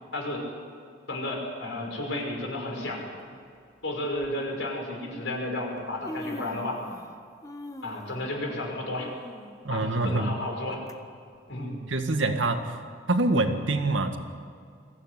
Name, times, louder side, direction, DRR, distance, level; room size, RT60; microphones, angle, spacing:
voice 1, 0.1-0.5 1.1-3.1 3.8-6.8 7.8-9.1 9.7-10.8 11.5-11.8, left 1 dB, 75° left, 0 dB, 5.8 m, -32 dB
Human voice, 2.2-2.4 3.5-3.6 4.2-4.3 5.4-5.5 5.7-7.2 7.4-10.9 11.3-11.4 12.3-12.4, left 1 dB, 20° left, 1.1 m, -43 dB
voice 2, 9.6-10.4 11.9-12.8 13.1-14.2, right 2 dB, 80° right, 6 dB, 1.9 m, -25 dB
23.0 x 15.5 x 9.8 m, 2.2 s
head